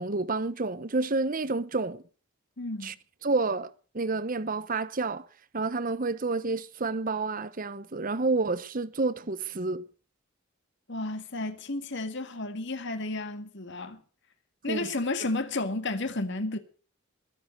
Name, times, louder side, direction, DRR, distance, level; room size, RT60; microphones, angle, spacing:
voice 1, 0.0-2.0 2.8-2.9 3.2-5.3 5.5-9.8 14.7-14.9, right 3 dB, 40° right, 0.9 m, -29 dB
voice 2, 2.6-3.0 10.9-14.0 14.6-16.6, left 2 dB, 55° left, 2.0 m, -32 dB
22.0 x 7.6 x 6.6 m
head